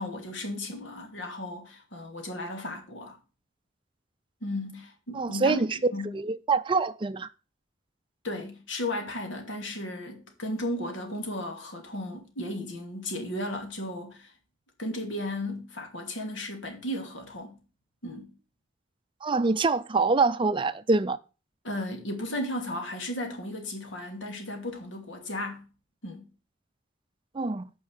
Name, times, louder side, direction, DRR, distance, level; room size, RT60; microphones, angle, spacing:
voice 1, 0.0-3.2 4.4-6.2 8.2-14.3 14.8-17.6 18.0-18.3 21.6-25.6 26.0-26.2, left 1 dB, 75° left, 2.7 m, -35 dB
voice 2, 5.1-7.3 19.2-21.2 27.3-27.7, right 3 dB, 25° right, 0.5 m, -25 dB
9.1 x 5.5 x 6.4 m
head